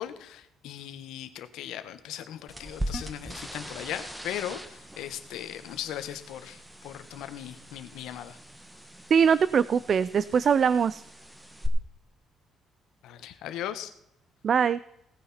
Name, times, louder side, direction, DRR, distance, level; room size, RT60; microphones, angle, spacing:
voice 1, 0.0-8.4 13.0-13.9, left 11 dB, 85° left, 10 dB, 1.3 m, -38 dB
sound 1, 2.5-11.7, right 1 dB, 5° right, 1.3 m, -41 dB
voice 2, 9.1-11.0 14.4-14.8, right 7 dB, 40° right, 17 dB, 0.4 m, -22 dB
17.5 x 9.8 x 4.3 m, 0.79 s
cardioid pair, 140°, 0 cm